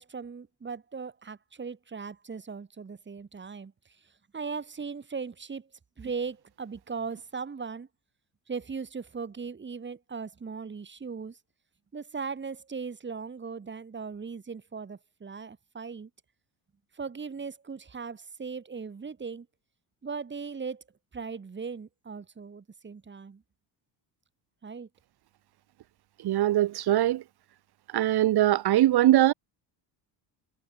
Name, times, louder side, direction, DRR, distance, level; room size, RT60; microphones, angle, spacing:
voice 1, 0.0-3.7 4.3-5.7 6.0-7.9 8.5-11.4 11.9-16.1 16.9-19.5 20.0-20.8 21.1-23.4 24.6-24.9, right 5 dB, 25° right, 6.6 m, -38 dB
voice 2, 26.2-27.2 27.9-29.3, right 14 dB, 55° right, 2.3 m, -22 dB
cardioid pair, 135°, 44 cm